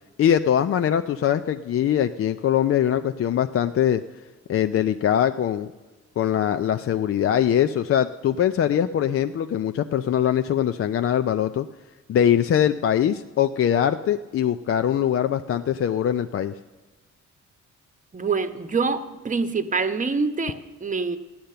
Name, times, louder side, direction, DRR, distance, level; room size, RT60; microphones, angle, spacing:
voice 1, 0.2-4.0 4.5-5.7 6.2-11.7 12.1-16.5, left 9 dB, 45° left, 9 dB, 0.5 m, -22 dB
voice 2, 18.1-21.2, right 4 dB, 25° right, 9 dB, 1.0 m, -25 dB
14.5 x 10.5 x 6.7 m, 1.2 s
cardioid pair, 90°, 30 cm